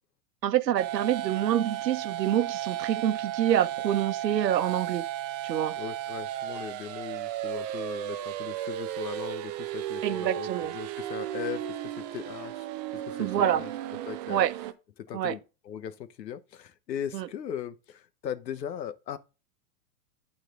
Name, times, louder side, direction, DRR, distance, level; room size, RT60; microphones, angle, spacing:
voice 1, 0.4-5.0 5.4-5.7 10.0-10.7 13.2-13.6 14.3-14.5 15.1-15.3 17.1-17.3, right 11 dB, 85° right, 1.0 m, -26 dB
sound 1, 0.8-14.7, right 12 dB, 25° right, 0.6 m, -34 dB
voice 2, 5.8-12.7 12.9-13.7 14.1-14.4 15.0-19.2, left 9 dB, 85° left, 1.3 m, -38 dB
12.0 x 4.7 x 3.8 m
hypercardioid pair, 150°, 49 cm